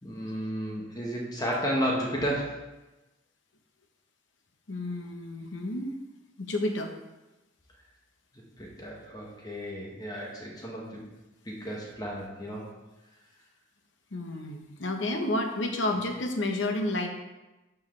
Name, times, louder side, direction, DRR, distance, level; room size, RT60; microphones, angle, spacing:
voice 1, 0.0-2.6 8.6-11.0 11.4-12.6, equal, 20° left, -2 dB, 1.2 m, -33 dB
voice 2, 4.7-5.9 6.4-6.9 14.1-17.1, left 1 dB, 65° left, 4 dB, 0.9 m, -30 dB
11.5 x 4.7 x 3.2 m, 1.1 s
head